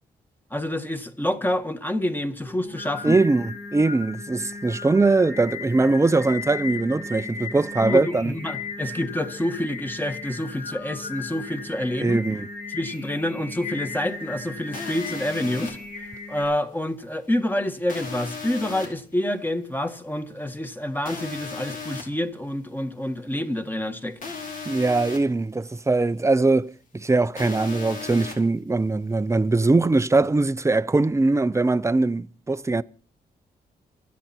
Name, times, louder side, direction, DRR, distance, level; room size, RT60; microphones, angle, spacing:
voice 1, 0.5-3.2 7.8-12.2 12.7-15.8 16.3-24.2, left 1 dB, 10° left, 1.9 m, -27 dB
Singing, 2.4-16.4, left 4 dB, 85° left, 5.5 m, -36 dB
voice 2, 3.0-8.3 12.0-12.5 24.7-32.8, right 3 dB, 15° right, 0.7 m, -21 dB
sound 1, 14.7-15.7 17.9-18.9 21.0-22.0 24.2-25.2 27.4-28.3, left 4 dB, 55° left, 4.7 m, -35 dB
28.0 x 9.5 x 4.4 m
cardioid pair, 80°, 16 cm